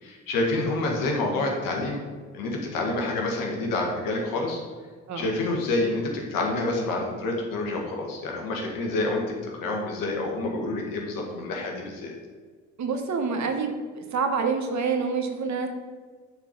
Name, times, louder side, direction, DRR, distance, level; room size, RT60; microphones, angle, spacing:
voice 1, 0.0-2.0 2.3-4.6 5.1-12.1, left 2 dB, 70° left, 0 dB, 1.8 m, -28 dB
voice 2, 12.8-15.7, right 5 dB, 55° right, 5 dB, 1.3 m, -27 dB
8.9 x 4.5 x 5.4 m, 1.5 s
hypercardioid pair, 45°, 34 cm